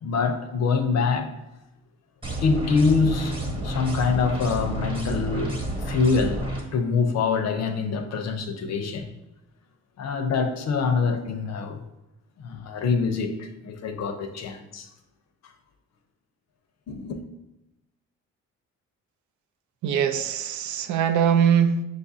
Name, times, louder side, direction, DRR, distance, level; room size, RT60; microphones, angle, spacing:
voice 1, 0.0-1.3 2.4-6.4 6.7-9.1 10.0-11.8 12.4-14.9 16.9-17.2, left 5 dB, 60° left, 7 dB, 0.6 m, -25 dB
sound 1, 2.2-6.6, right 1 dB, 15° right, 1.0 m, -30 dB
voice 2, 19.8-21.8, right 8 dB, 70° right, 8 dB, 0.5 m, -22 dB
6.3 x 2.4 x 2.7 m, 0.94 s
cardioid pair, 90°, 30 cm